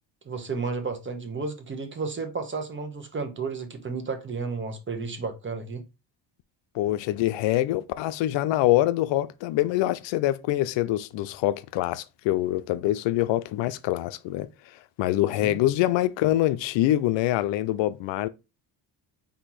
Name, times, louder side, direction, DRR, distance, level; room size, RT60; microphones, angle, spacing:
voice 1, 0.2-5.8 15.4-15.6, right 4 dB, 25° right, 1.0 m, -32 dB
voice 2, 6.7-14.5 15.0-18.3, left 14 dB, 80° left, 0.5 m, -25 dB
4.4 x 2.8 x 4.0 m
cardioid pair, 100°, 44 cm